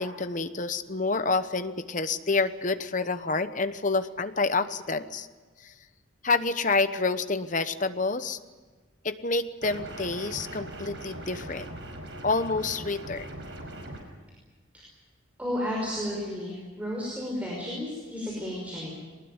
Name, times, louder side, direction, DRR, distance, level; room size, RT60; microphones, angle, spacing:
voice 1, 0.0-5.3 5.6-5.7 6.2-8.4 9.0-11.7 12.2-13.3, left 3 dB, 40° left, 11 dB, 1.0 m, -28 dB
sound 1, 9.6-14.0, right 1 dB, 60° right, 5.2 m, -40 dB
voice 2, 15.4-18.9, left 1 dB, 5° right, -4 dB, 5.6 m, -32 dB
22.5 x 20.0 x 9.7 m, 1.3 s
head